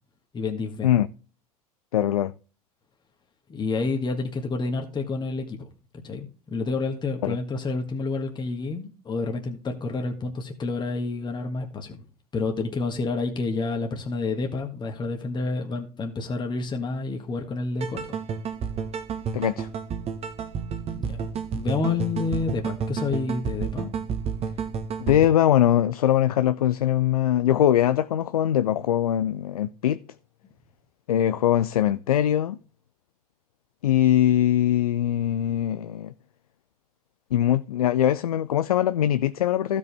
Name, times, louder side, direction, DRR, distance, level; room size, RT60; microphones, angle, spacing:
voice 1, 0.3-0.9 3.5-5.7 6.0-12.0 12.3-18.0 20.9-23.9, left 3 dB, 25° left, 1.7 m, -29 dB
voice 2, 1.9-2.3 7.2-7.4 19.3-19.7 25.0-30.0 31.1-32.6 33.8-36.1 37.3-39.8, left 11 dB, 75° left, 0.5 m, -22 dB
sound 1, 17.8-25.3, right 6 dB, 30° right, 1.5 m, -31 dB
15.5 x 5.3 x 3.4 m
figure-of-eight pair, 75°, 19 cm